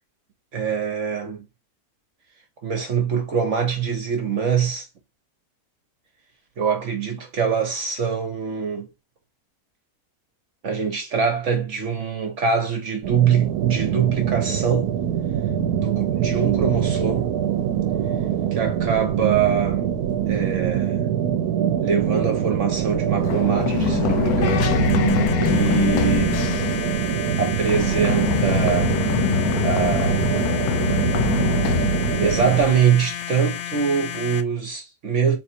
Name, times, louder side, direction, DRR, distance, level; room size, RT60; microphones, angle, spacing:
voice 1, 0.5-1.4 2.6-4.9 6.6-8.9 10.6-14.9 15.7-17.3 18.5-19.9 20.3-21.0 21.8-24.8 25.4-26.4 27.4-29.0 29.6-30.3 32.2-35.4, right 7 dB, 60° right, 1.1 m, -23 dB
sound 1, 13.0-32.6, right 10 dB, 85° right, 1.1 m, -24 dB
Run, 23.2-33.0, left 9 dB, 80° left, 1.2 m, -25 dB
sound 2, 24.4-34.4, left 10 dB, 60° left, 0.8 m, -31 dB
4.0 x 2.5 x 4.3 m
omnidirectional pair, 1.6 m